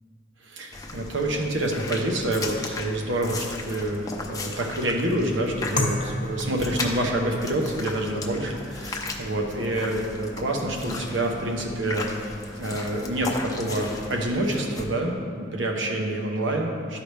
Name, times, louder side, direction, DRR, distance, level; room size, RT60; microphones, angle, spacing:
voice 1, 0.4-12.1 12.6-17.0, right 1 dB, 80° right, 1 dB, 1.1 m, -27 dB
sound 1, 0.7-14.8, left 2 dB, 20° left, 0.6 m, -36 dB
sound 2, 5.1-16.5, equal, 70° left, 0.7 m, -44 dB
sound 3, 5.7-14.6, left 1 dB, 40° left, 0.9 m, -36 dB
12.5 x 4.8 x 3.4 m, 2.3 s
head